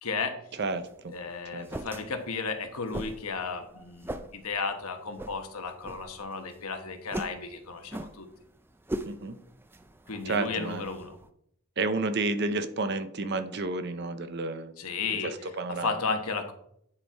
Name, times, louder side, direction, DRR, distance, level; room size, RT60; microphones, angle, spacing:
voice 1, 0.0-0.4 1.1-8.3 10.1-11.2 14.8-15.3 15.8-16.5, left 4 dB, 80° left, 6 dB, 1.2 m, -34 dB
voice 2, 0.5-1.1 1.5-1.7 9.1-9.4 10.2-10.8 11.8-14.7 15.2-15.9, right 3 dB, 50° right, 10 dB, 0.7 m, -31 dB
sound 1, 0.6-11.3, right 1 dB, 10° right, 0.4 m, -42 dB
9.7 x 4.5 x 4.6 m, 0.71 s
head